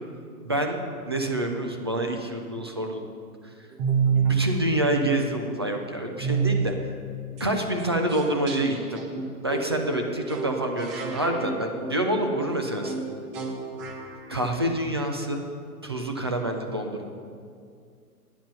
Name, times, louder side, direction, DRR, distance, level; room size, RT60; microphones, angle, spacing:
voice 1, 0.4-0.8 1.1-3.1 4.3-6.7 7.4-9.0 9.4-13.0 14.3-15.4 15.8-17.1, right 1 dB, 20° right, 3 dB, 0.3 m, -27 dB
sound 1, 3.7-4.5 6.2-6.7 7.4-7.5 7.8-7.9 8.1-14.3, right 6 dB, 40° right, 1.5 m, -28 dB
12.5 x 9.2 x 5.7 m, 2.3 s
hypercardioid pair, 125°, 46 cm